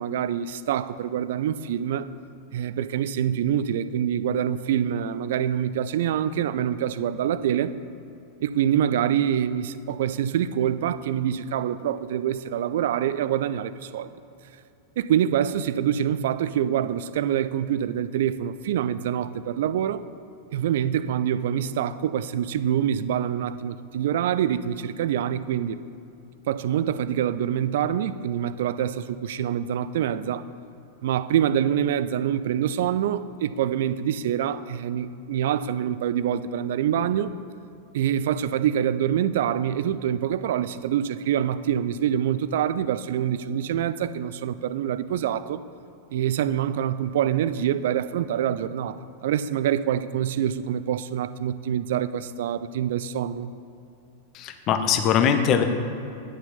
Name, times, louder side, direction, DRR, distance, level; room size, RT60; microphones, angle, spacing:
voice 1, 0.0-2.1 2.5-7.7 8.4-14.1 15.0-20.0 20.5-25.8 26.5-30.5 31.0-37.3 37.9-45.6 46.1-53.5, right 10 dB, 55° right, 14 dB, 0.3 m, -25 dB
voice 2, 54.3-55.6, left 8 dB, 35° left, 7 dB, 0.8 m, -21 dB
9.6 x 6.6 x 5.6 m, 2.7 s
figure-of-eight pair, 90°, 0 cm